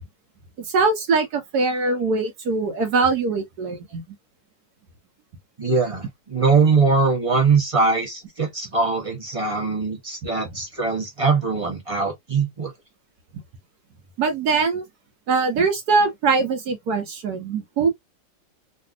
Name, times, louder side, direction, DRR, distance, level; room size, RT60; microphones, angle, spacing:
voice 1, 0.6-4.0 14.2-14.8 15.3-17.9, right 4 dB, 65° right, 1.2 m, -22 dB
voice 2, 5.6-12.7, right 4 dB, 30° right, 0.6 m, -21 dB
3.3 x 2.6 x 2.3 m
omnidirectional pair, 2.0 m